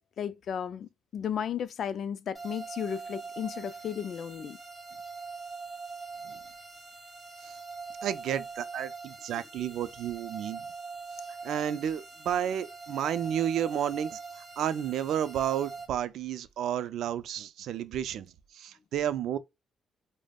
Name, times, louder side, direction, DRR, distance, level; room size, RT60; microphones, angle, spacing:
voice 1, 0.0-4.6 9.3-9.4, left 8 dB, 60° left, 0.3 m, -34 dB
sound 1, 2.3-15.9, right 4 dB, 5° right, 2.3 m, -43 dB
voice 2, 8.0-10.6 11.4-14.2 14.6-18.3 18.5-19.4, right 10 dB, 75° right, 0.4 m, -31 dB
5.0 x 2.0 x 2.3 m
cardioid pair, 90°, 0 cm